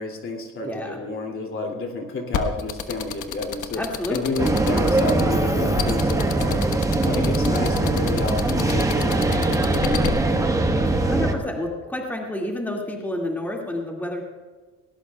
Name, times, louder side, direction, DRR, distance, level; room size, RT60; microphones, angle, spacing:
voice 1, 0.0-3.8 4.1-6.6 7.0-10.9, left 3 dB, 45° left, 1 dB, 2.7 m, -30 dB
voice 2, 0.6-1.0 3.8-4.4 11.0-14.2, left 1 dB, 5° left, -1 dB, 2.2 m, -29 dB
sound 1, 2.3-10.1, left 8 dB, 75° left, 1.3 m, -29 dB
sound 2, 4.4-11.3, right 2 dB, 10° right, 1.3 m, -21 dB
18.5 x 18.5 x 2.4 m, 1.4 s
cardioid pair, 125°, 31 cm